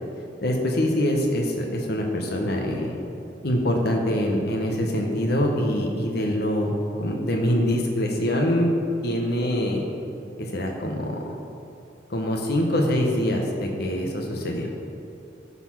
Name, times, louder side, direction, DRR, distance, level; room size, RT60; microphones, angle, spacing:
voice 1, 0.4-2.9 3.4-6.7 7.0-8.7 9.0-9.8 10.4-11.3 12.1-14.7, left 1 dB, 60° left, 1 dB, 0.9 m, -24 dB
11.5 x 4.2 x 5.8 m, 2.6 s
head